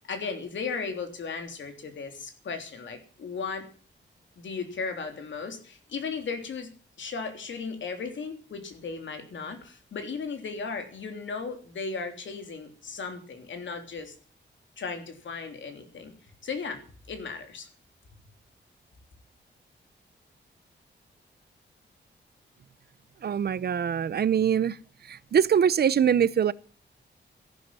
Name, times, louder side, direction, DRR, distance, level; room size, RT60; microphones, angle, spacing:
voice 1, 0.1-3.7 4.4-6.7 7.0-14.1 14.8-16.1 16.4-16.8 17.1-17.7, left 5 dB, 85° left, 3.2 m, -36 dB
voice 2, 23.2-24.8 25.1-26.5, right 8 dB, 55° right, 0.6 m, -23 dB
14.0 x 11.5 x 7.5 m
wide cardioid pair, 170°, 19 cm